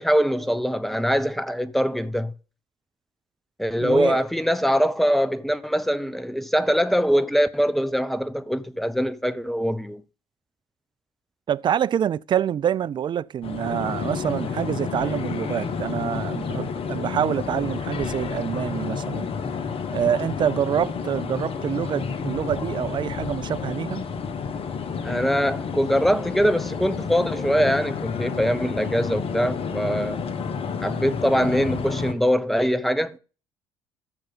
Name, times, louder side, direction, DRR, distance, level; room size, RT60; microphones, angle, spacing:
voice 1, 0.0-2.3 3.6-10.0 25.0-30.2 30.8-33.2, equal, ahead, 1.0 m, -23 dB
voice 2, 3.8-4.2 11.5-19.3 19.9-24.0, right 9 dB, 40° right, 0.4 m, -26 dB
sound 1, 13.4-32.1, left 5 dB, 45° left, 1.5 m, -30 dB
13.5 x 6.6 x 3.8 m
hypercardioid pair, 55°, 13 cm